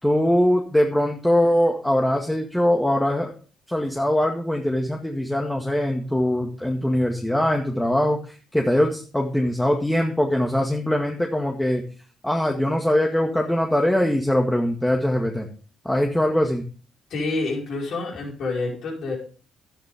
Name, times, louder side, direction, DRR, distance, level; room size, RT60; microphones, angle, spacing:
voice 1, 0.0-3.3 3.7-11.8 12.2-15.5 15.8-16.6, left 1 dB, 10° left, 1 dB, 1.9 m, -22 dB
voice 2, 17.1-19.2, left 3 dB, 60° left, -2 dB, 5.3 m, -28 dB
12.0 x 10.5 x 3.6 m, 0.38 s
hypercardioid pair, 45°, 0 cm